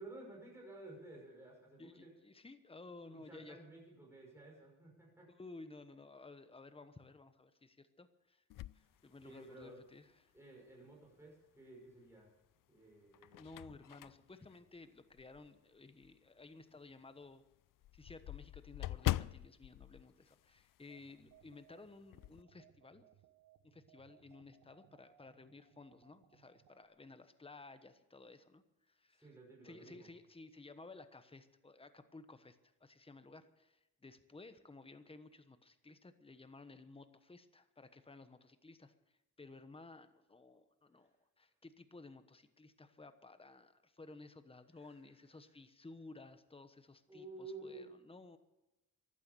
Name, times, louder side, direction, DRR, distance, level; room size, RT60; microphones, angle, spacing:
voice 1, 0.0-2.1 3.1-5.3 8.8-8.9 9.2-9.8 10.3-12.3 12.7-13.4 29.1-30.1 41.0-41.1 44.7-45.0 47.1-47.9, right 2 dB, 5° right, -2 dB, 5.9 m, -53 dB
voice 2, 1.8-3.6 5.4-8.4 8.7-10.3 13.3-17.4 17.9-23.0 23.6-29.3 29.6-38.9 39.4-48.4, left 3 dB, 15° left, 10 dB, 1.1 m, -56 dB
sound 1, 8.5-9.8 10.4-10.5 11.9-12.5 12.9-15.6 16.0-16.1 16.5-16.6 16.9-17.0 17.2-21.0 21.3-21.5 21.8-22.4, left 15 dB, 65° left, 0.5 m, -43 dB
sound 2, 20.9-26.9, right 10 dB, 90° right, 1.3 m, -68 dB
15.0 x 11.5 x 6.9 m, 0.98 s
cardioid pair, 95°, 36 cm